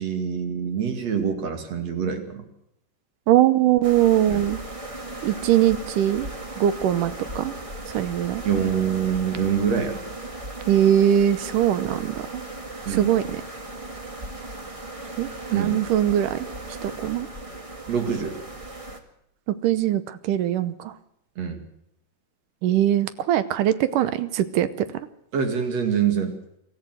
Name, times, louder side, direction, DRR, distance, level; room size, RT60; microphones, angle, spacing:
voice 1, 0.0-2.4 4.3-4.5 8.4-10.0 12.9-13.1 15.5-15.8 17.9-18.3 21.4-21.6 25.3-26.3, right 7 dB, 55° right, 6 dB, 3.2 m, -25 dB
voice 2, 3.3-4.6 5.2-6.3 6.6-7.5 7.9-8.4 10.7-12.4 12.9-13.4 15.2-16.5 16.8-17.3 19.6-20.9 22.6-24.9, right 11 dB, 75° right, 14 dB, 2.4 m, -21 dB
sound 1, 3.8-19.0, right 1 dB, 15° right, 1.1 m, -37 dB
24.0 x 14.0 x 7.9 m, 0.78 s
omnidirectional pair, 3.8 m